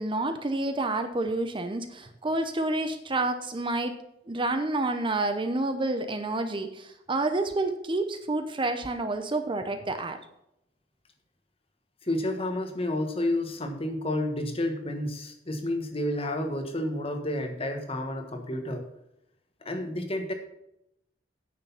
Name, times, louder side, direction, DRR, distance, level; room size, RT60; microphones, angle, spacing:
voice 1, 0.0-3.9 4.3-10.2, right 2 dB, 30° right, 8 dB, 0.7 m, -29 dB
voice 2, 12.0-18.9 19.6-20.3, left 1 dB, 30° left, 5 dB, 1.4 m, -30 dB
9.5 x 6.7 x 5.7 m, 0.81 s
head